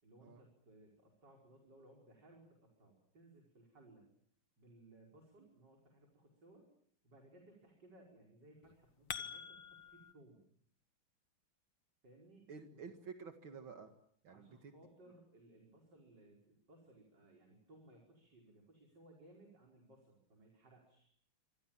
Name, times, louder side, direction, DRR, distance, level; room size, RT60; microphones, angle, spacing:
voice 1, 0.0-4.1 4.6-6.7 7.0-10.5 12.0-12.8 14.3-21.0, right 1 dB, 55° right, 0 dB, 6.0 m, -63 dB
sound 1, 8.6-10.1, left 8 dB, 65° left, 2.0 m, -46 dB
voice 2, 12.5-13.9 14.2-14.8, right 5 dB, 70° right, 6 dB, 2.5 m, -51 dB
27.0 x 26.0 x 7.5 m, 0.64 s
omnidirectional pair, 2.3 m